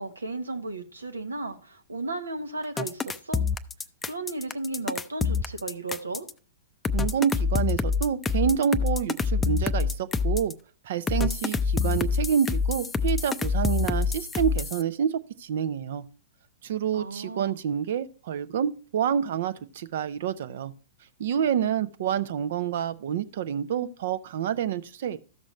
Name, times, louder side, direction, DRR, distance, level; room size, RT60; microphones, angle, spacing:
voice 1, 0.0-3.4 4.0-6.3 16.9-17.6, right 2 dB, 85° right, 1.0 m, -34 dB
sound 1, 2.8-6.3 6.8-10.5 11.1-14.8, left 5 dB, 10° left, 0.5 m, -26 dB
voice 2, 6.9-10.5 10.8-16.0 16.6-20.7 21.2-25.2, right 8 dB, 60° right, 0.6 m, -28 dB
13.5 x 6.2 x 3.1 m
figure-of-eight pair, 110°, 0 cm